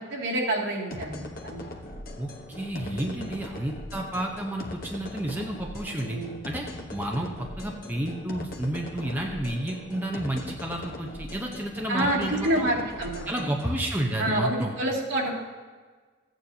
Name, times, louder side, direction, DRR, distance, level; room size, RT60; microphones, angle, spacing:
voice 1, 0.1-1.6 2.7-3.3 5.9-6.4 11.9-13.6 14.2-15.3, right 1 dB, 75° right, -4 dB, 2.4 m, -28 dB
sound 1, 0.9-13.8, left 1 dB, 45° left, 1.0 m, -40 dB
voice 2, 2.2-6.2 6.4-6.7 6.9-12.7 13.3-14.7, right 1 dB, 10° right, 0 dB, 0.8 m, -31 dB
14.5 x 9.1 x 2.8 m, 1.4 s
head